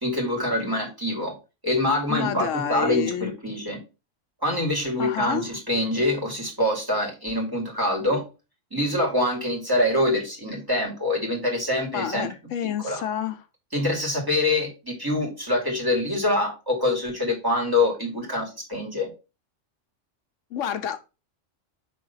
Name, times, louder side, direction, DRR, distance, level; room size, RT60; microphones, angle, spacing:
voice 1, 0.0-1.4 1.6-3.8 4.4-8.2 8.7-12.3 12.6-13.0 13.7-19.1, left 1 dB, 15° right, 2.2 m, -25 dB
voice 2, 2.1-3.3 5.0-5.5 11.9-13.5 20.5-21.0, left 9 dB, 85° left, 1.1 m, -29 dB
5.5 x 3.6 x 5.5 m
omnidirectional pair, 1.3 m